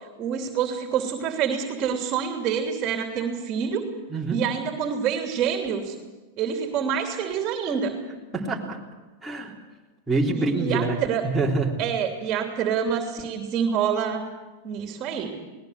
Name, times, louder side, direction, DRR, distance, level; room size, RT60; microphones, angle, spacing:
voice 1, 0.2-3.8 4.3-5.9 6.4-8.0 10.3-11.2 11.8-14.2 14.6-15.4, right 7 dB, 35° right, 3 dB, 3.1 m, -27 dB
voice 2, 4.1-4.4 8.3-8.8 9.2-9.6 10.1-11.8, right 3 dB, 10° right, -4 dB, 3.6 m, -26 dB
20.0 x 19.5 x 8.1 m, 1.2 s
hypercardioid pair, 115°, 0 cm